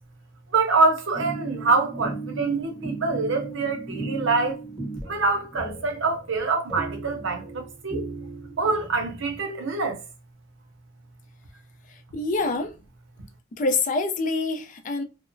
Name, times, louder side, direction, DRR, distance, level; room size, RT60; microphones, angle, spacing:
voice 1, 0.5-4.6 5.1-8.0 8.6-10.0, right 3 dB, 85° right, 0.7 m, -25 dB
sound 1, 1.1-9.4, right 3 dB, ahead, 0.7 m, -36 dB
voice 2, 12.1-12.7 13.6-15.0, left 3 dB, 45° left, 0.4 m, -25 dB
2.8 x 2.0 x 2.5 m
head